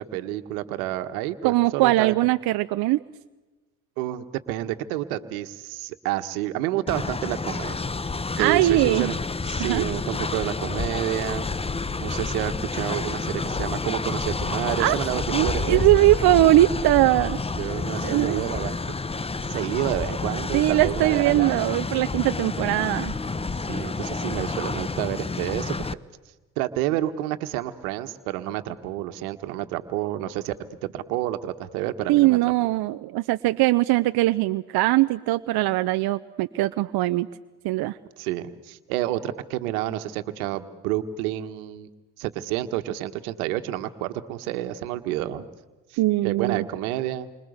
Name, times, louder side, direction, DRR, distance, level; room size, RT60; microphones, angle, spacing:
voice 1, 0.0-2.1 4.0-7.8 8.4-9.2 9.4-11.4 12.0-16.0 17.6-18.9 19.5-21.6 23.7-25.9 26.6-30.5 30.8-32.4 38.2-41.9 42.2-45.5 45.9-47.3, right 14 dB, 80° right, 9 dB, 1.6 m, -29 dB
voice 2, 1.4-3.0 8.4-9.1 9.6-9.8 14.8-15.0 15.3-17.4 18.0-18.4 20.5-23.2 32.1-37.3 37.6-38.0 46.0-46.6, right 17 dB, 60° right, 10 dB, 0.8 m, -21 dB
Train, 6.9-25.9, left 4 dB, 15° left, 0.9 m, -29 dB
29.0 x 25.5 x 8.1 m, 1.2 s
hypercardioid pair, 60°, 43 cm